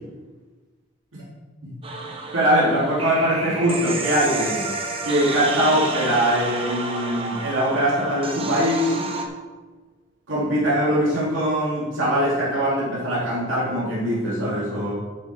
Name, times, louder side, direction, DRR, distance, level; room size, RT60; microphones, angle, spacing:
sound 1, 1.8-9.3, right 2 dB, 30° right, 0.9 m, -30 dB
voice 1, 2.3-4.6 5.0-8.9 10.3-14.9, equal, 85° right, -8 dB, 2.9 m, -22 dB
8.6 x 8.2 x 4.6 m, 1.4 s
head